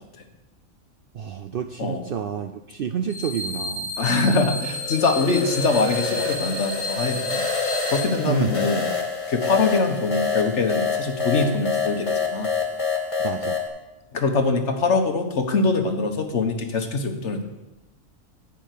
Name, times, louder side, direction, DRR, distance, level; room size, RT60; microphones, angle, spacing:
voice 1, 1.1-3.9 8.2-8.5 13.2-13.6, right 8 dB, 65° right, 8 dB, 0.5 m, -29 dB
sound 1, 3.1-8.1, left 1 dB, 90° left, 2.5 m, -32 dB
voice 2, 4.0-7.4 7.9-8.9 9.3-12.5 14.1-17.4, left 3 dB, 60° left, 6 dB, 1.4 m, -23 dB
sound 2, 4.6-13.7, left 5 dB, 25° left, 1.4 m, -27 dB
10.5 x 5.4 x 8.3 m, 0.98 s
omnidirectional pair, 1.4 m